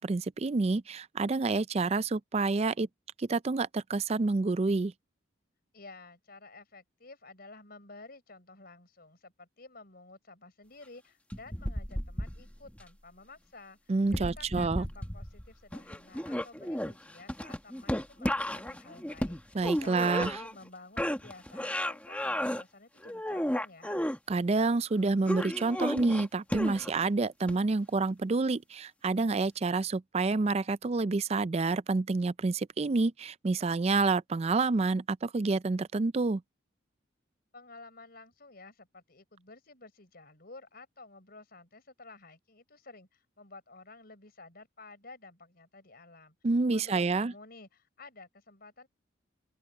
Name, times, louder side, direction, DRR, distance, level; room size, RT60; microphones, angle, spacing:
voice 1, 0.0-2.9 3.2-4.9 13.9-14.8 19.5-20.4 24.3-36.4 46.4-47.3, right 3 dB, 30° right, 0.4 m, -28 dB
voice 2, 5.7-24.0 37.5-46.3 46.7-48.9, left 3 dB, 50° left, 4.7 m, -52 dB
sound 1, 11.3-12.8 14.0-15.5 15.7-20.7 21.0-22.6 23.0-24.2 25.3-27.0 27.5-27.6, equal, 5° left, 1.4 m, -33 dB
open air
head